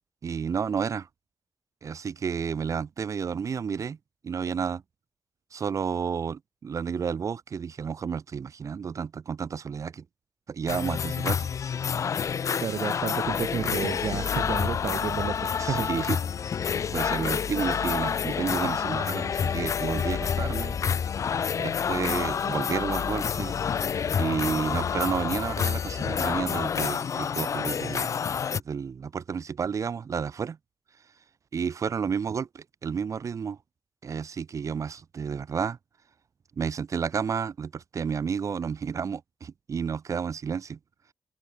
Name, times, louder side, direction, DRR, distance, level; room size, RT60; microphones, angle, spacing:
voice 1, 0.2-1.1 1.8-4.0 4.2-4.8 5.5-10.0 10.5-11.5 15.6-16.2 16.9-20.8 21.6-23.5 24.2-28.1 28.5-30.6 31.5-33.6 34.0-35.8 36.6-40.8, right 6 dB, 60° right, 1.3 m, -31 dB
sound 1, 10.7-28.6, left 7 dB, 60° left, 0.5 m, -29 dB
voice 2, 12.6-15.9, right 8 dB, 80° right, 0.7 m, -31 dB
sound 2, 13.2-26.9, left 8 dB, 80° left, 1.6 m, -38 dB
cardioid pair, 90°, 6 cm